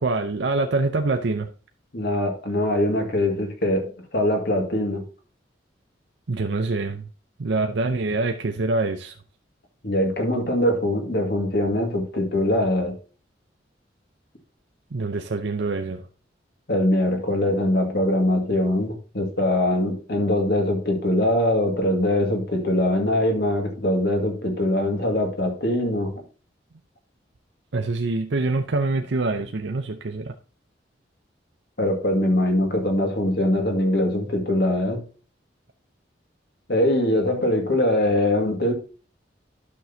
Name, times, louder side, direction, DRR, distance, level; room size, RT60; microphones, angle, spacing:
voice 1, 0.0-1.5 6.3-7.1 7.4-9.1 14.9-16.0 27.7-30.3, right 3 dB, 75° right, 0.7 m, -25 dB
voice 2, 1.9-5.0 9.8-13.0 16.7-26.2 31.8-35.0 36.7-38.7, left 1 dB, 60° left, 2.0 m, -22 dB
12.0 x 6.2 x 2.8 m
head